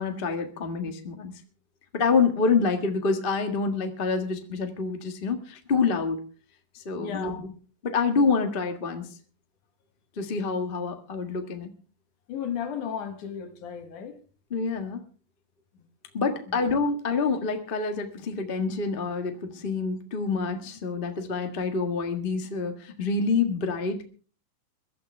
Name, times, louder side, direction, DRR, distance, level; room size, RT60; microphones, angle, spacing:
voice 1, 0.0-1.3 1.9-6.2 6.8-7.3 7.8-9.1 10.2-11.7 14.5-15.0 16.1-24.0, left 4 dB, 30° left, 1.0 m, -27 dB
voice 2, 7.0-7.5 12.3-14.2 15.7-15.8 16.5-16.7, left 8 dB, 70° left, 3.1 m, -35 dB
22.5 x 13.0 x 3.4 m
omnidirectional pair, 3.8 m